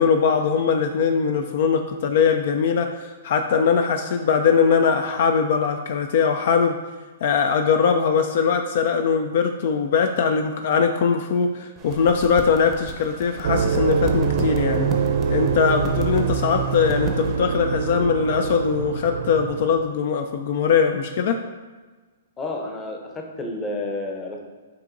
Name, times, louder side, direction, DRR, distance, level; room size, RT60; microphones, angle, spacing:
voice 1, 0.0-6.8 7.2-14.9 15.3-21.4, left 6 dB, 60° left, 5 dB, 0.3 m, -21 dB
sound 1, 11.8-17.4, right 3 dB, 25° right, 0.6 m, -35 dB
sound 2, 13.4-19.8, right 6 dB, 65° right, 0.3 m, -24 dB
voice 2, 22.4-24.5, left 2 dB, 20° left, 2 dB, 0.7 m, -30 dB
7.4 x 2.7 x 2.6 m, 1.3 s
hypercardioid pair, 130°, 0 cm